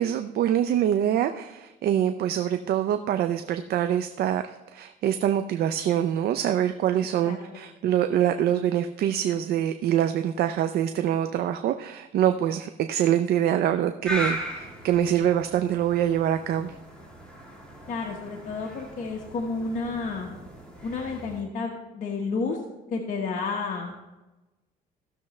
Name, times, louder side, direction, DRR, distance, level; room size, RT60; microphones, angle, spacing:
voice 1, 0.0-16.7, right 10 dB, 65° right, 8 dB, 0.5 m, -25 dB
sound 1, 14.0-21.4, right 1 dB, 5° left, 2.7 m, -38 dB
voice 2, 17.9-20.3 20.8-22.6 22.9-23.9, left 4 dB, 50° left, -1 dB, 1.4 m, -31 dB
16.0 x 6.8 x 3.2 m, 1.1 s
cardioid pair, 110°, 17 cm